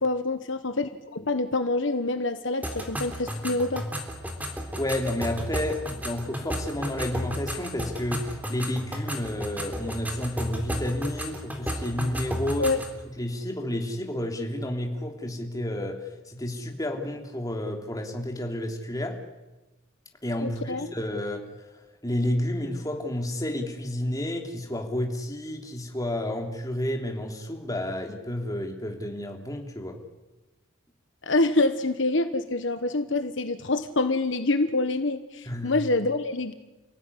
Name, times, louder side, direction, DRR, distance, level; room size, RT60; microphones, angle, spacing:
voice 1, 0.0-3.8 12.6-12.8 20.4-20.9 31.2-36.5, left 2 dB, 65° left, 9 dB, 1.3 m, -26 dB
sound 1, 2.6-13.0, equal, 10° right, 3.6 m, -33 dB
voice 2, 4.6-12.7 13.2-19.2 20.2-21.8 22.0-30.0 35.4-35.7, left 1 dB, 20° left, 2 dB, 3.3 m, -31 dB
30.0 x 16.5 x 10.0 m, 1.1 s
head